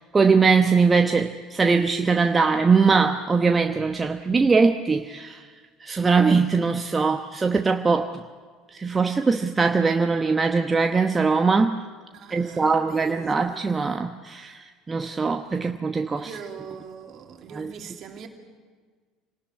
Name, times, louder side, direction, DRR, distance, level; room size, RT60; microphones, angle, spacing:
voice 1, 0.1-5.4 5.8-8.1 8.7-11.8 12.3-16.3 17.6-17.7, right 4 dB, 20° right, 1.0 m, -21 dB
voice 2, 12.1-13.8 15.4-15.6 16.2-18.3, right 6 dB, 45° right, 2.9 m, -42 dB
27.0 x 19.0 x 9.6 m
figure-of-eight pair, 65°, 0 cm